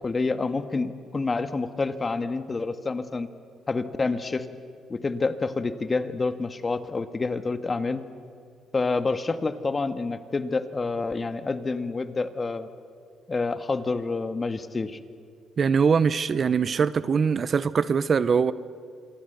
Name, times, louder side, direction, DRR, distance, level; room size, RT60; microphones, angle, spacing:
voice 1, 0.0-3.3 3.7-4.5 4.9-8.0 8.7-12.7 13.3-15.0, left 3 dB, 30° left, 1.5 m, -28 dB
voice 2, 15.6-18.5, right 6 dB, 45° right, 0.8 m, -22 dB
27.0 x 24.0 x 8.1 m
cardioid pair, 90°, 0 cm